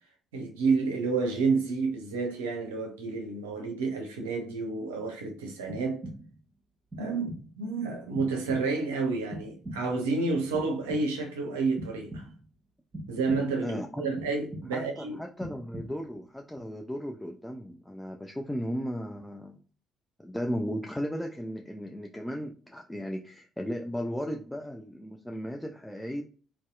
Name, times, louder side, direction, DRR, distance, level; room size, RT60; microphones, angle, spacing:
voice 1, 0.3-6.0 7.0-12.2 13.1-15.2, right 4 dB, 80° right, 0.5 m, -30 dB
sound 1, 5.7-6.5 6.9-7.6 8.2-8.9 9.3-10.1 10.5-11.4 11.8-12.6 12.9-13.7 14.2-15.0 15.4-16.2, right 1 dB, 35° right, 0.9 m, -43 dB
voice 2, 13.6-14.1 14.7-19.6 20.2-26.2, equal, 10° left, 0.3 m, -35 dB
2.7 x 2.2 x 2.2 m
figure-of-eight pair, 45°, 0 cm